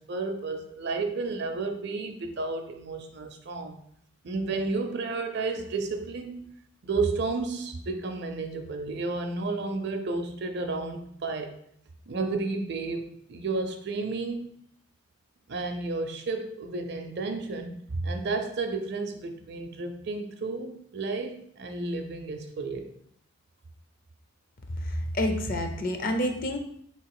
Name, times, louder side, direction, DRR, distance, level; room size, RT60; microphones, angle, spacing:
voice 1, 0.0-3.7 4.2-11.6 12.1-14.6 15.5-22.9, right 3 dB, 50° right, 6 dB, 0.5 m, -32 dB
voice 2, 24.8-26.6, left 1 dB, 40° left, 5 dB, 0.5 m, -28 dB
3.6 x 2.9 x 4.7 m, 0.68 s
head